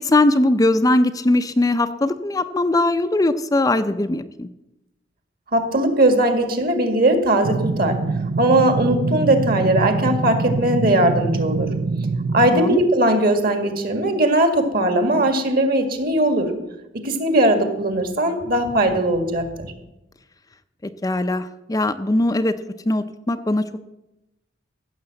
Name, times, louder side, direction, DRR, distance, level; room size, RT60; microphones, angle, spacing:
voice 1, 0.0-4.5 12.5-12.8 21.0-22.6 22.9-23.6, left 2 dB, 20° left, 9 dB, 0.5 m, -20 dB
voice 2, 5.5-8.0 8.4-11.7 12.3-16.5 16.9-19.7, right 1 dB, 50° right, 7 dB, 2.0 m, -19 dB
sound 1, 7.4-12.5, right 4 dB, 75° right, 0.6 m, -24 dB
15.5 x 7.2 x 7.8 m, 0.93 s
head